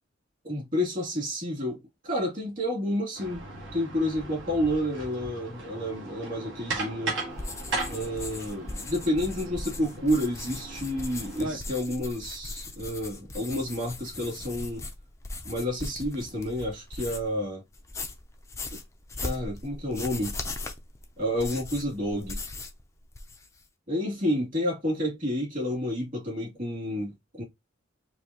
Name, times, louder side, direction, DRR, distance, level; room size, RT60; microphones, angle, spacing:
voice 1, 0.4-3.4 3.7-7.2 7.9-14.8 15.4-17.6 18.7-18.8 19.2-20.4 21.2-22.4 23.9-27.4, equal, 40° right, 2.4 m, -30 dB
sound 1, 3.1-11.6, right 3 dB, 70° right, 1.6 m, -37 dB
sound 2, 7.3-17.4 17.7-22.8 23.1-23.6, left 2 dB, 15° left, 0.5 m, -39 dB
4.7 x 2.9 x 2.8 m
head